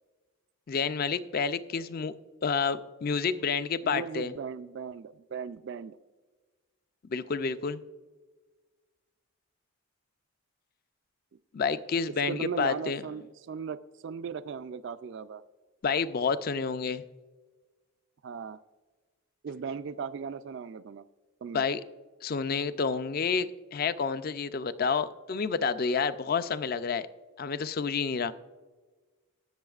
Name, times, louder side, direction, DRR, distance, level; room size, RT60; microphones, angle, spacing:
voice 1, 0.7-2.1 2.4-4.3 7.1-7.8 11.5-13.0 15.8-17.0 21.5-21.8 22.2-27.1 27.4-28.3, left 5 dB, 40° left, 14 dB, 0.4 m, -29 dB
voice 2, 3.8-6.0 12.3-15.4 18.2-18.6 19.4-21.0 21.4-21.7, right 6 dB, 55° right, 14 dB, 0.3 m, -37 dB
19.5 x 7.0 x 2.4 m, 1.3 s
head